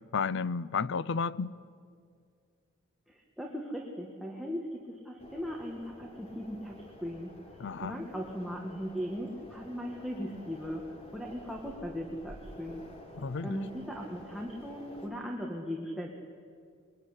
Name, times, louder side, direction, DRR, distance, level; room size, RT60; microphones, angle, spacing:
voice 1, 0.1-1.5 7.6-8.0 13.2-13.6, left 5 dB, 65° left, 0.6 m, -32 dB
voice 2, 3.1-7.3 7.8-12.8 13.4-16.1, equal, ahead, 1.8 m, -38 dB
sound 1, 5.2-15.1, equal, 30° left, 3.8 m, -50 dB
22.5 x 22.0 x 9.8 m
head